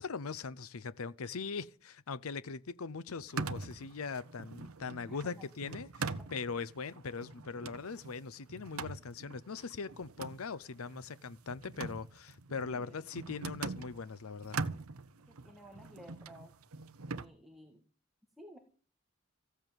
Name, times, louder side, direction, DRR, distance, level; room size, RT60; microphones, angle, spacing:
voice 1, 0.0-14.6, left 5 dB, 75° left, 0.7 m, -41 dB
sound 1, 3.2-14.0 14.4-17.3, right 4 dB, 80° right, 0.9 m, -43 dB
voice 2, 5.1-5.8 6.3-6.4 12.6-13.0 15.3-16.5 17.1-17.8 18.4-18.6, equal, ahead, 1.8 m, -55 dB
15.0 x 8.0 x 9.1 m
head